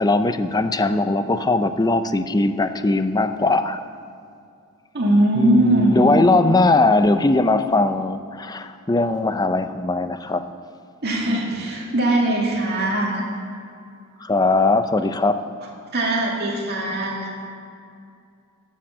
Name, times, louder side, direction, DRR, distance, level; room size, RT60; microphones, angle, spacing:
voice 1, 0.0-3.8 5.3-10.4 14.2-15.4, left 2 dB, 20° left, 10 dB, 0.5 m, -20 dB
voice 2, 4.9-6.1 11.0-13.2 15.9-17.3, right 1 dB, 50° right, -3 dB, 2.2 m, -20 dB
11.5 x 7.2 x 7.4 m, 2.4 s
head